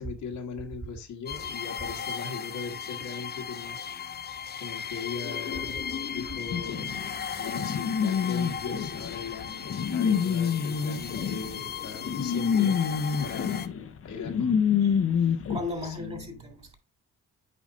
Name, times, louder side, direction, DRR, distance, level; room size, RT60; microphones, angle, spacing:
voice 1, 0.0-4.2 4.6-5.8 6.1-7.0 7.4-12.8 13.2-13.6 14.0-14.6 15.2-15.3 15.8-16.5, left 5 dB, 75° left, 1.7 m, -39 dB
sound 1, 1.3-13.7, left 7 dB, 35° left, 0.6 m, -36 dB
sound 2, 6.5-15.6, left 7 dB, 50° left, 1.0 m, -27 dB
voice 2, 15.5-16.8, left 2 dB, 20° right, 3.3 m, -36 dB
8.6 x 5.0 x 2.7 m
cardioid pair, 90°, 30 cm